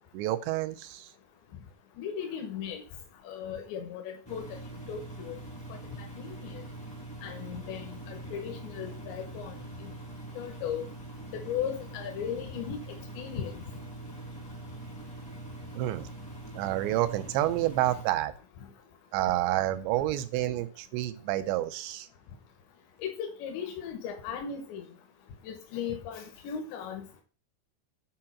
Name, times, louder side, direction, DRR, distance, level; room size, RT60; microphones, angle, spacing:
voice 1, 0.1-1.1 15.8-16.1 16.6-18.3 19.1-22.1, right 15 dB, 90° right, 10 dB, 2.9 m, -29 dB
voice 2, 2.0-2.8 3.2-4.4 4.9-5.4 6.1-6.5 7.2-9.5 10.3-10.9 11.5-12.8 13.1-13.5 23.0-24.9 25.4-27.0, left 8 dB, 80° left, 3 dB, 3.4 m, -36 dB
Engine, 4.2-18.0, right 2 dB, 20° left, 0.6 m, -43 dB
8.9 x 4.8 x 5.7 m, 0.36 s
omnidirectional pair, 5.1 m